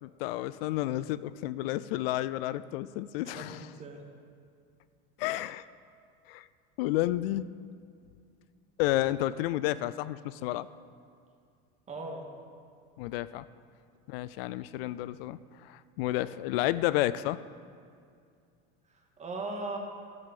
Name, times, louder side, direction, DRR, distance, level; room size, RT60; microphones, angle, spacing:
voice 1, 0.0-3.7 5.2-5.6 6.3-6.5 6.8-7.5 8.8-10.7 13.0-13.4 14.1-17.4, left 15 dB, 75° left, 16 dB, 0.4 m, -31 dB
voice 2, 3.2-4.0 11.9-12.3 19.2-19.8, right 2 dB, 25° right, 1 dB, 1.8 m, -38 dB
13.0 x 5.1 x 7.4 m, 2.3 s
supercardioid pair, 105°, 29 cm